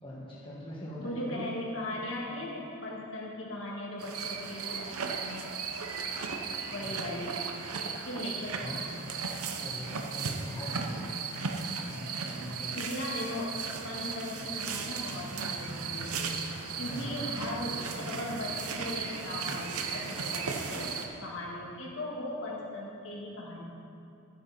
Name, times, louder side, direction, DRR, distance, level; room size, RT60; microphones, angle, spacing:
voice 1, 0.0-1.5 6.8-7.2 8.6-8.8 9.1-11.1 11.9-12.8 16.9-17.2, equal, 20° left, -6 dB, 1.7 m, -42 dB
voice 2, 1.0-5.5 6.6-7.4 7.8-8.9 12.7-13.5 13.8-16.3 16.8-20.9 21.2-23.6, left 1 dB, 60° left, -4 dB, 2.1 m, -38 dB
sound 1, 4.0-21.1, right 5 dB, 85° right, 0.9 m, -36 dB
12.5 x 9.8 x 4.3 m, 2.7 s
head